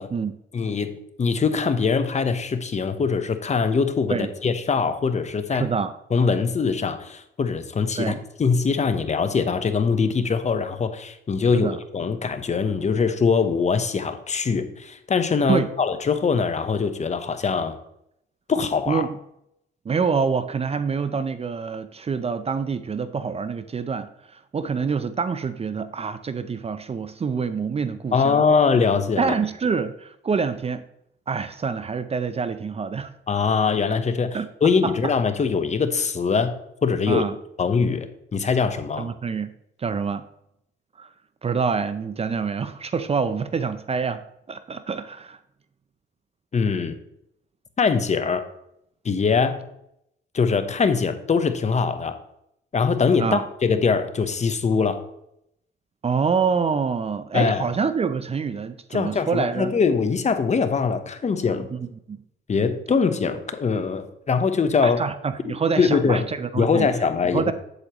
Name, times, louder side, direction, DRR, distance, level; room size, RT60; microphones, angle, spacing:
voice 1, 0.5-5.7 6.1-8.1 8.4-17.8 18.5-19.0 28.1-29.3 33.3-37.2 37.6-38.1 38.3-39.1 46.5-47.0 47.8-48.4 49.0-49.6 50.3-52.2 52.7-55.0 57.3-57.6 58.9-61.7 62.5-65.0 65.5-66.3 66.5-67.4, left 5 dB, 35° left, 9 dB, 0.9 m, -22 dB
voice 2, 5.5-5.9 8.0-8.2 11.5-11.8 15.5-15.7 18.9-19.1 19.9-28.4 29.2-30.8 31.3-33.1 34.3-34.5 34.8-34.9 37.1-37.4 39.0-39.5 39.8-40.3 41.0-41.1 41.4-45.4 53.2-53.4 56.0-59.7 61.7-61.8 62.1-62.2 64.8-66.9 67.3-67.5, right 5 dB, 30° right, 12 dB, 0.5 m, -26 dB
8.5 x 8.0 x 3.0 m, 0.78 s
cardioid pair, 90°, 20 cm